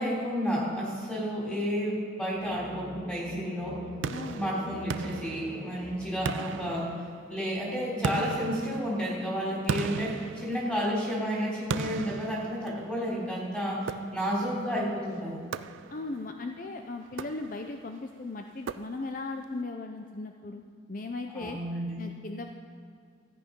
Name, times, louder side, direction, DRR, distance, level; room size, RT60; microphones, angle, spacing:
voice 1, 0.0-3.9 4.3-6.9 7.3-15.4 21.3-22.0, equal, 5° left, -5 dB, 3.4 m, -31 dB
sound 1, 2.3-7.0, equal, 25° left, 1.2 m, -46 dB
sound 2, 4.0-5.8 6.3-7.4 8.0-11.1 11.7-13.1 13.9-14.5 15.5-16.2 17.1-17.8 18.7-19.3, right 5 dB, 80° right, 0.4 m, -37 dB
voice 2, 15.9-20.6 20.9-21.6 22.0-22.5, left 3 dB, 45° left, 4 dB, 0.5 m, -37 dB
13.5 x 8.6 x 5.3 m, 2.3 s
head